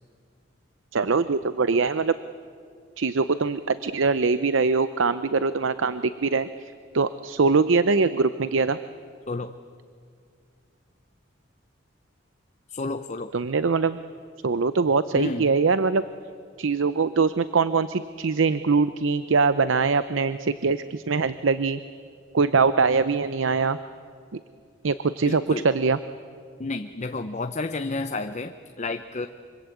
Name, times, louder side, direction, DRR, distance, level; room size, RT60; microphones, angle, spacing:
voice 1, 0.9-2.1 3.0-8.8 13.3-14.0 14.4-16.0 16.6-21.8 22.3-23.8 24.3-24.4 24.8-26.0, right 4 dB, 80° right, 13 dB, 0.7 m, -23 dB
voice 2, 12.7-13.3 15.1-15.5 25.2-25.7 26.6-29.3, left 3 dB, 35° left, 9 dB, 0.7 m, -31 dB
25.0 x 25.0 x 8.4 m, 2.3 s
head